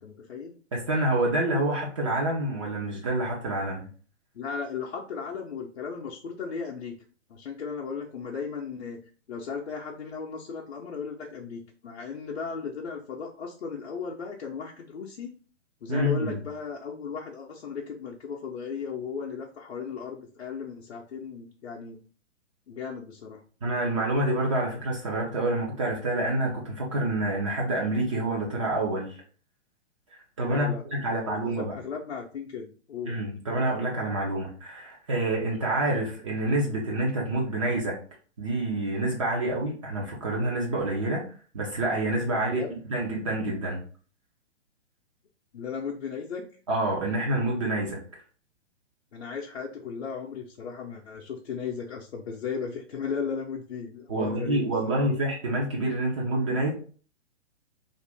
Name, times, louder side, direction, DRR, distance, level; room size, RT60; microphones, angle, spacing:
voice 1, 0.0-0.5 4.3-6.9 7.3-9.0 9.3-15.3 15.8-22.0 22.7-23.4 30.4-33.1 42.5-42.7 45.5-46.5 49.1-55.0, left 6 dB, 60° left, -2 dB, 0.6 m, -36 dB
voice 2, 0.7-3.9 15.9-16.4 23.6-29.2 30.4-31.7 33.0-38.0 38.4-41.2 41.5-43.8 46.7-48.0 54.1-56.7, right 1 dB, 25° right, -3 dB, 0.5 m, -27 dB
2.5 x 2.4 x 3.4 m, 0.40 s
figure-of-eight pair, 125°, 37 cm